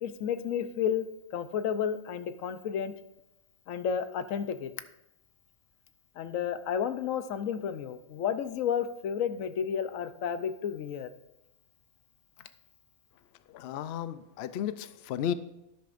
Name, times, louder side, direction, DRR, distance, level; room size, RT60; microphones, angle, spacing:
voice 1, 0.0-1.0 1.3-2.9 3.7-4.7 6.2-11.1, left 8 dB, 90° left, 11 dB, 1.1 m, -31 dB
voice 2, 13.5-15.3, left 10 dB, 65° left, 13 dB, 0.7 m, -34 dB
12.5 x 10.5 x 2.6 m, 0.92 s
omnidirectional pair, 1.3 m